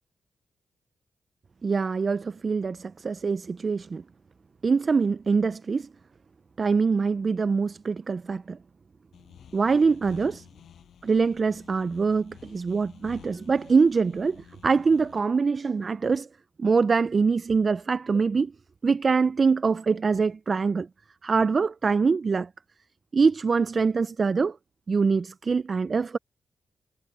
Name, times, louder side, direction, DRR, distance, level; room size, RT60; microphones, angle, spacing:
voice 1, 1.6-4.0 4.6-5.9 6.6-8.6 9.5-10.5 11.0-16.3 16.6-18.5 18.8-20.9 21.2-22.5 23.1-24.6 24.9-26.2, right 5 dB, 45° right, 0.4 m, -24 dB
sound 1, 9.1-15.2, left 9 dB, 85° left, 6.4 m, -51 dB
cardioid pair, 70°, 0 cm